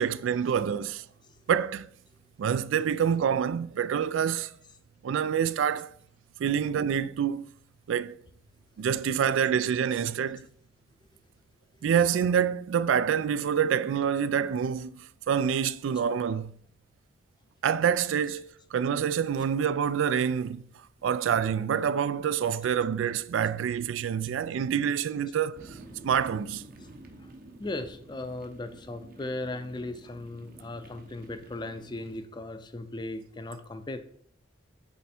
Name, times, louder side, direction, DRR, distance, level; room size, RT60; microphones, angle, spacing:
voice 1, 0.0-1.0 1.5-1.9 2.4-4.6 5.0-5.9 6.4-7.5 7.9-8.2 8.8-10.5 11.8-16.5 17.6-20.7 21.0-25.8 26.0-26.7, right 8 dB, 85° right, 0.3 m, -27 dB
sound 1, 25.5-32.3, right 1 dB, 50° right, 0.8 m, -50 dB
voice 2, 27.6-34.0, left 2 dB, 25° left, 0.4 m, -37 dB
7.4 x 3.4 x 4.3 m
head